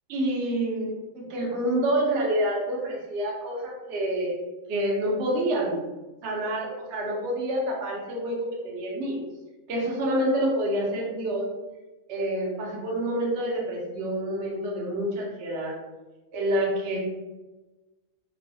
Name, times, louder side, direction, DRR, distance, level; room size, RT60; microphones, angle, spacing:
voice 1, 0.1-4.4 4.7-5.8 6.2-9.2 9.7-11.5 12.1-15.8 16.3-17.0, right 1 dB, 60° right, -2 dB, 0.7 m, -27 dB
3.0 x 2.1 x 2.5 m, 1.1 s
omnidirectional pair, 1.6 m